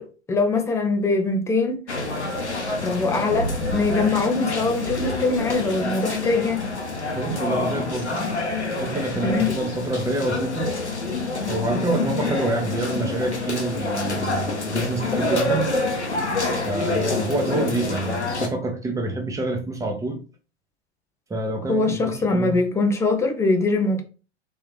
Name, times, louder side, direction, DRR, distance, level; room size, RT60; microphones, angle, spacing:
voice 1, 0.0-1.8 2.8-6.7 9.2-9.5 21.7-24.0, left 3 dB, 10° left, 0.6 m, -22 dB
sound 1, 1.9-18.5, left 2 dB, 90° left, 0.9 m, -27 dB
voice 2, 7.1-8.1 8.8-10.8 11.5-15.7 16.6-20.2 21.3-22.6, right 2 dB, 10° right, 0.9 m, -27 dB
3.5 x 3.3 x 3.1 m
figure-of-eight pair, 95°, 33 cm